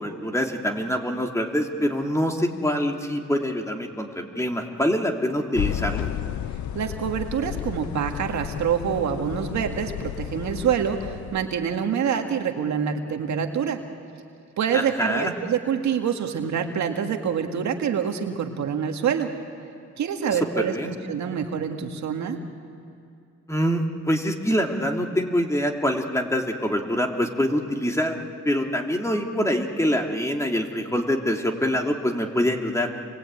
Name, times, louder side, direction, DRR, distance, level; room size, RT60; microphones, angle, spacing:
voice 1, 0.0-6.1 14.7-15.3 20.2-20.9 23.5-28.2 28.4-32.9, equal, 10° left, 2 dB, 2.9 m, -25 dB
sound 1, 5.5-11.8, left 11 dB, 70° left, 0.8 m, -32 dB
voice 2, 6.7-13.8 14.6-19.3 20.0-20.8 21.1-22.4, right 7 dB, 65° right, 4 dB, 2.1 m, -26 dB
28.5 x 22.0 x 9.0 m, 2.4 s
cardioid pair, 90°, 30 cm